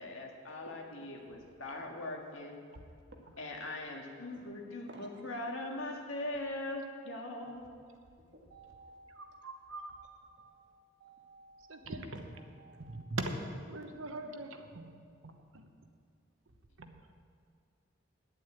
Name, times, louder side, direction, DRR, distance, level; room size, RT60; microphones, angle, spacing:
voice 1, 0.0-2.6 3.4-7.7, left 1 dB, 75° left, 0 dB, 1.7 m, -41 dB
voice 2, 4.9-5.2 8.5-9.5 9.9-10.1 10.4-11.9 12.4-13.2, right 2 dB, 55° right, 0 dB, 1.6 m, -57 dB
voice 3, 9.1-9.9 11.7-12.2 12.8-13.3 13.7-15.7 16.8-17.0, right 2 dB, 85° right, 5 dB, 1.1 m, -42 dB
9.4 x 8.3 x 8.3 m, 2.2 s
head